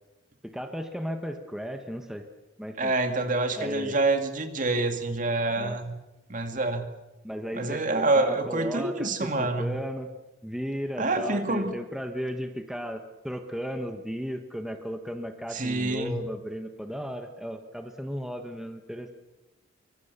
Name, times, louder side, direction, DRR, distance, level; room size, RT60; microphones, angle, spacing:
voice 1, 0.4-2.3 2.6-2.9 3.6-4.0 5.6-5.8 7.2-10.1 10.4-19.1, equal, 5° right, 5 dB, 1.5 m, -35 dB
voice 2, 2.8-5.9 6.3-6.9 7.5-9.8 11.0-11.8 15.5-16.3, right 2 dB, 45° right, 6 dB, 2.4 m, -27 dB
25.5 x 24.5 x 7.0 m, 1.0 s
head